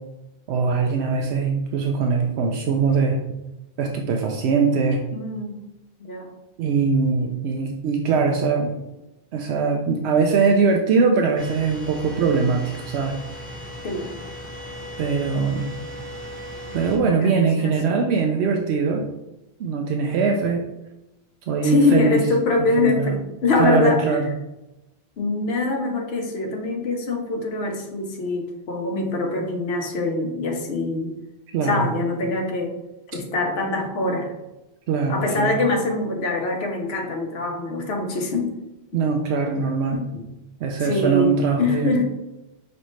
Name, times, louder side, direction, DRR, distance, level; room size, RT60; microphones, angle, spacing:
voice 1, 0.5-3.2 3.8-5.0 6.6-8.7 9.3-13.1 15.0-15.7 16.7-19.0 19.6-20.6 21.5-22.2 22.8-23.1 23.6-24.3 31.5-31.9 34.9-35.6 38.9-40.0 40.6-42.0, right 5 dB, 85° right, 2 dB, 0.8 m, -21 dB
voice 2, 5.1-5.6 6.0-6.3 13.8-14.1 16.9-17.9 21.6-24.2 25.2-31.1 31.6-32.7 33.1-34.3 35.1-38.5 39.9-40.2 40.8-42.0, left 3 dB, 75° left, 1 dB, 1.0 m, -24 dB
sound 1, 11.4-17.0, equal, 10° right, 0.9 m, -37 dB
5.2 x 3.2 x 3.1 m, 0.96 s
omnidirectional pair, 1.1 m